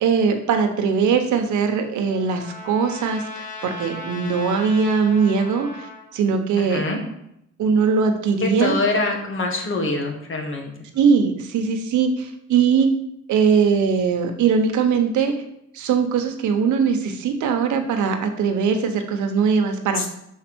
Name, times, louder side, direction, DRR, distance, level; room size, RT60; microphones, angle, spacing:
voice 1, 0.0-5.9 6.1-6.9 7.6-8.8 10.9-12.9 13.3-15.3 15.7-20.1, right 6 dB, 80° right, 6 dB, 1.0 m, -20 dB
Trumpet, 1.4-6.1, left 3 dB, 25° left, 1.7 m, -38 dB
voice 2, 6.6-7.0 8.4-10.7 20.0-20.1, left 2 dB, 45° left, 2 dB, 1.6 m, -24 dB
5.7 x 4.3 x 6.1 m, 0.77 s
cardioid pair, 120°, 29 cm